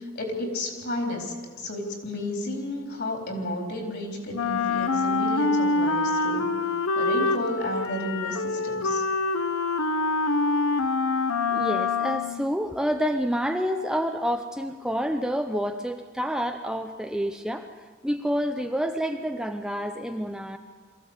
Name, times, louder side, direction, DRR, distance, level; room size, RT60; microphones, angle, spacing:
voice 1, 0.0-6.5 7.0-9.0, left 1 dB, 50° left, 2 dB, 3.9 m, -32 dB
Wind instrument woodwind instrument, 4.3-12.5, left 3 dB, 80° left, 1.0 m, -25 dB
voice 2, 11.5-17.7 18.0-20.6, equal, 5° right, 5 dB, 0.6 m, -28 dB
23.0 x 15.0 x 8.0 m, 1.5 s
head